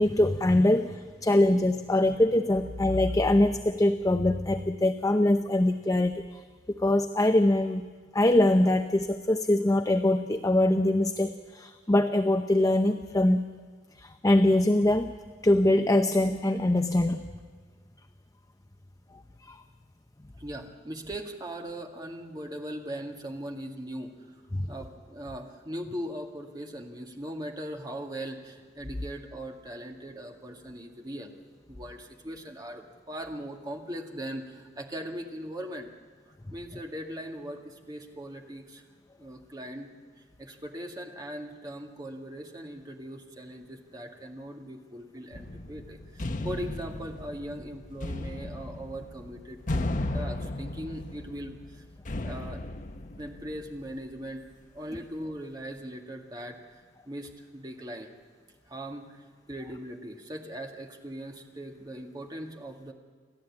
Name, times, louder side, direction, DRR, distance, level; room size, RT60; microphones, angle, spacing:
voice 1, 0.0-6.2 6.7-13.4 14.0-15.1 15.4-17.2 19.4-19.6 24.5-24.7, left 1 dB, 20° left, 7 dB, 0.7 m, -23 dB
voice 2, 20.4-24.4 24.7-31.3 31.7-35.9 36.5-38.8 39.2-39.9 40.2-51.8 52.2-52.6 53.2-54.5 54.7-58.1 58.7-62.9, right 1 dB, 25° right, 2 dB, 2.1 m, -40 dB
sound 1, 45.3-54.0, left 2 dB, 50° left, 1.0 m, -35 dB
29.0 x 13.0 x 8.6 m, 1.5 s
head